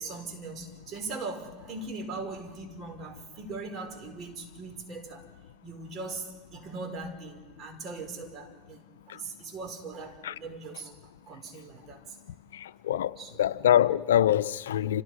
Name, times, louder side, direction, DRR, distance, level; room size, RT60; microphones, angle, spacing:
voice 1, 0.0-5.3 5.6-10.9 11.3-12.2 13.2-13.5, right 3 dB, 40° right, 4.7 m, -40 dB
voice 2, 12.5-15.0, left 11 dB, 85° left, 0.6 m, -25 dB
29.5 x 27.0 x 4.9 m
hypercardioid pair, 105°, 0 cm